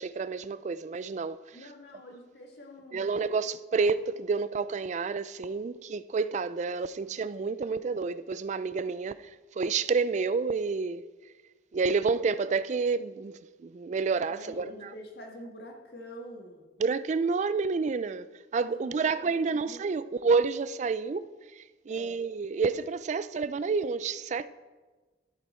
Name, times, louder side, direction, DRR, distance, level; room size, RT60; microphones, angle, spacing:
voice 1, 0.0-1.4 2.9-9.1 9.6-11.1 11.7-14.7 16.8-18.3 18.5-21.3 21.6-24.5, right 4 dB, 40° right, 0.3 m, -29 dB
voice 2, 1.5-3.4 14.3-16.7 18.6-19.8 21.9-22.1, equal, 65° left, 1.8 m, -46 dB
13.0 x 8.1 x 4.4 m
head